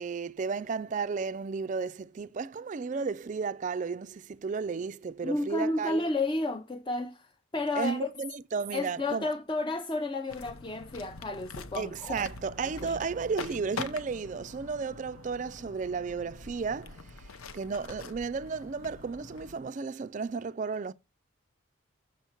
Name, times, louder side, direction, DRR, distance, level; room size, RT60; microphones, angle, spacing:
voice 1, 0.0-6.1 7.8-9.3 11.8-17.3 17.5-20.9, right 5 dB, 35° right, 0.3 m, -33 dB
voice 2, 5.2-8.1 8.7-12.2 12.8-13.0, left 2 dB, 20° left, 0.5 m, -32 dB
sound 1, 10.3-19.6, left 4 dB, 85° left, 0.8 m, -44 dB
6.9 x 6.4 x 4.5 m
head